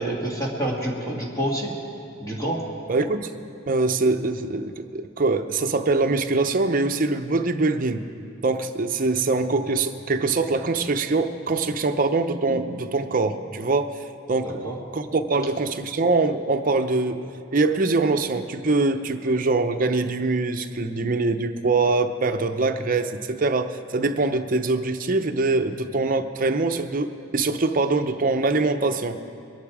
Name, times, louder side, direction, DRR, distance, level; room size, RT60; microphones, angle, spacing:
voice 1, 0.0-1.7 2.2-2.6 14.4-14.8, right 1 dB, 20° left, -3 dB, 2.0 m, -27 dB
voice 2, 2.9-3.3 3.7-8.1 8.4-14.0 14.3-17.2 17.5-29.2, right 3 dB, 45° right, 7 dB, 0.7 m, -23 dB
22.5 x 10.5 x 4.8 m, 2.7 s
head